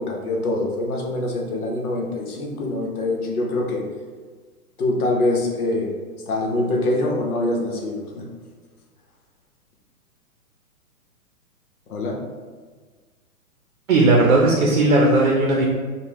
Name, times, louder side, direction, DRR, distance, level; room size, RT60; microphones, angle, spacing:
voice 1, 0.0-3.8 4.8-5.9 6.3-8.3 11.9-12.2, left 2 dB, 75° left, 0 dB, 0.9 m, -24 dB
voice 2, 13.9-15.7, right 2 dB, 60° right, -1 dB, 0.6 m, -16 dB
3.6 x 2.3 x 2.9 m, 1.5 s
hypercardioid pair, 175°, 45 cm